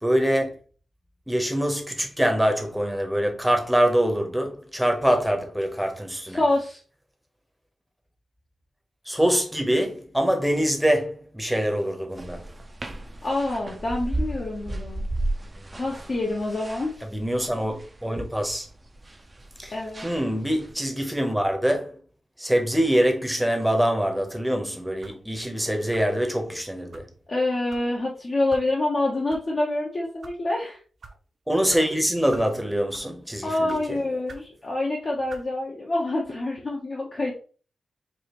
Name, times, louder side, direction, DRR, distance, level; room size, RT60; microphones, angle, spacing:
voice 1, 0.0-0.6 1.3-6.4 9.1-12.4 17.1-18.7 19.6-19.7 20.0-22.0 22.4-27.1 31.5-34.0, equal, 5° right, 0.8 m, -24 dB
voice 2, 6.3-6.8 13.2-15.0 15.7-16.9 19.7-20.1 27.3-30.8 33.4-37.3, left 2 dB, 45° left, 0.8 m, -26 dB
sound 1, 12.2-20.7, right 1 dB, 25° right, 0.5 m, -34 dB
sound 2, 25.0-25.3 25.9-26.2 26.9-27.1 27.7-27.9 28.5-28.7 29.3-29.4 30.0-30.4 31.0-31.2 31.7-31.8 32.3-32.5 32.9-33.2 33.7-33.8 34.3-34.5 35.3-35.5, right 3 dB, 55° right, 0.7 m, -45 dB
4.8 x 2.4 x 2.9 m
wide cardioid pair, 100°, 0 cm